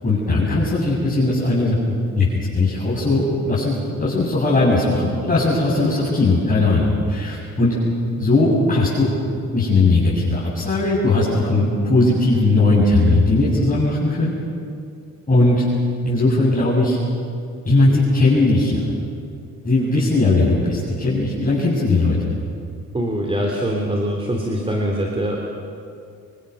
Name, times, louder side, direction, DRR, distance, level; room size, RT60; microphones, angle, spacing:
voice 1, 0.0-2.3 2.5-7.7 8.2-9.1 9.5-14.3 15.3-15.6 16.0-17.0 17.6-18.9 19.6-22.2, left 2 dB, 25° left, -8 dB, 7.6 m, -18 dB
voice 2, 22.9-25.4, right 1 dB, 20° right, 0 dB, 3.5 m, -23 dB
26.0 x 24.0 x 7.0 m, 2.4 s
cardioid pair, 90°, 30 cm